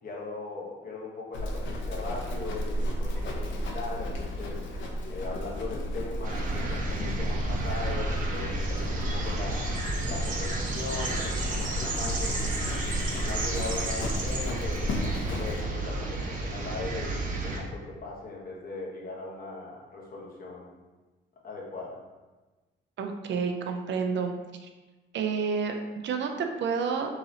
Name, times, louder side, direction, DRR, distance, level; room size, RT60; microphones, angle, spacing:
voice 1, 0.0-4.6 5.1-9.7 10.0-12.8 13.2-20.7 21.4-22.0, left 3 dB, 45° left, -3 dB, 1.2 m, -39 dB
Livestock farm animals working animals, 1.3-15.6, equal, 70° left, 0.8 m, -33 dB
sound 1, 6.2-17.6, right 2 dB, 40° right, 0.9 m, -32 dB
voice 2, 23.0-24.3 24.6-24.7 25.1-27.1, right 5 dB, 65° right, 4 dB, 0.5 m, -29 dB
3.8 x 3.0 x 4.0 m, 1.2 s
cardioid pair, 90°, 20 cm